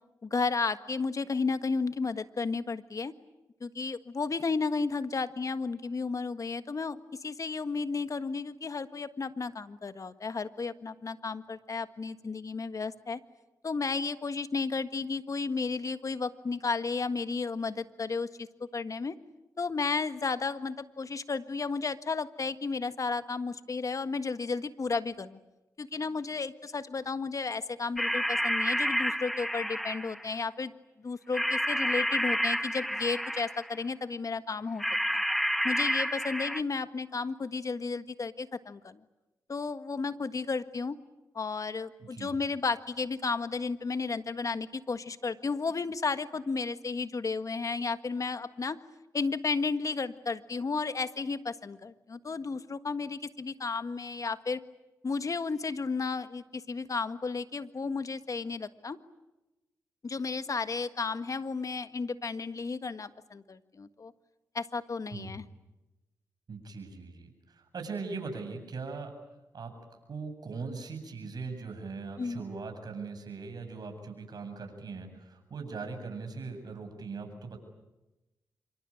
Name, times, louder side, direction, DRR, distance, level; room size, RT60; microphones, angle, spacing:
voice 1, 0.2-3.1 3.6-13.2 13.6-18.5 18.7-19.1 19.6-25.4 25.8-30.7 31.0-34.8 35.1-35.2 35.6-39.0 39.5-41.0 41.3-48.8 49.1-54.6 55.0-59.0 60.0-64.1 64.5-65.4 72.2-72.4, left 4 dB, 45° left, 11 dB, 1.6 m, -33 dB
sound 1, 28.0-30.3 31.3-33.8 34.8-36.6, equal, ahead, 1.5 m, -30 dB
voice 2, 42.0-42.3 65.1-65.4 66.5-69.1 69.5-69.7 70.1-77.6, right 4 dB, 60° right, 5 dB, 7.9 m, -40 dB
27.0 x 24.5 x 8.7 m, 1.0 s
cardioid pair, 50°, 8 cm